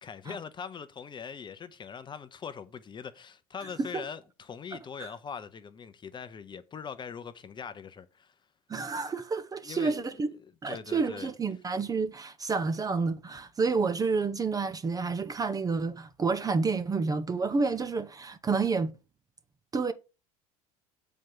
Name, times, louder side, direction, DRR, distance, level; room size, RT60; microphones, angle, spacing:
voice 1, 0.0-8.3 9.6-10.0 10.4-11.3, left 6 dB, 25° left, 0.9 m, -42 dB
voice 2, 8.7-10.3 10.6-18.9 19.7-19.9, right 4 dB, 20° right, 0.7 m, -29 dB
7.6 x 4.7 x 5.4 m
figure-of-eight pair, 70°, 19 cm